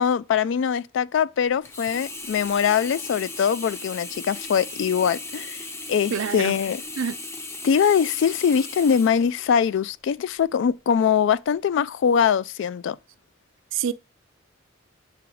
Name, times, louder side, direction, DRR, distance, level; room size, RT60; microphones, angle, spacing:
voice 1, 0.0-5.6 5.9-6.8 7.6-13.0, left 7 dB, 65° left, 0.3 m, -22 dB
Sink (filling or washing), 1.6-9.9 10.4-10.5, left 2 dB, 15° left, 0.7 m, -37 dB
voice 2, 6.1-6.6 7.0-7.2 13.7-13.9, right 7 dB, 70° right, 0.4 m, -26 dB
6.8 x 4.9 x 3.1 m
head